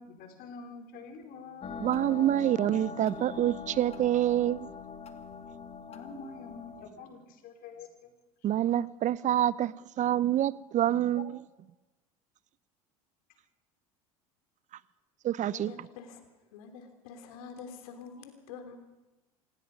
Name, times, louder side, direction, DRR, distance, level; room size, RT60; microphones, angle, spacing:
voice 1, 0.0-1.7 5.9-8.1 11.1-11.2, left 4 dB, 55° left, 4.7 m, -46 dB
sound 1, 1.6-6.9, left 6 dB, 35° left, 2.4 m, -42 dB
voice 2, 1.8-4.7 8.4-11.3 15.2-15.7, right 12 dB, 40° right, 0.7 m, -27 dB
voice 3, 15.5-18.8, left 5 dB, 70° left, 3.2 m, -47 dB
26.5 x 18.5 x 5.3 m
hypercardioid pair, 75°, 18 cm